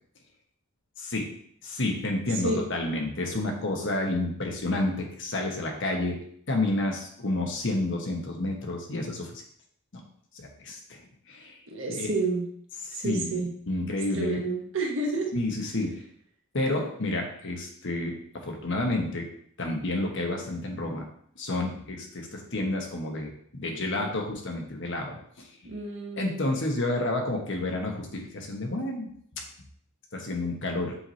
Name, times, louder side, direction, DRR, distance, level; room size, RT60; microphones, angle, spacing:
voice 1, 1.0-1.3 1.6-6.2 6.5-9.4 10.3-11.0 11.3-11.6 11.9-12.1 12.9-14.4 15.3-16.0 16.5-19.3 19.6-21.0 21.4-25.5 26.2-29.1 30.1-31.0, left 2 dB, 60° left, 1 dB, 1.2 m, -30 dB
voice 2, 11.7-12.5 12.9-13.5 14.1-15.3 25.6-26.5, right 3 dB, 65° right, 0 dB, 1.3 m, -30 dB
6.9 x 3.3 x 4.1 m, 0.65 s
head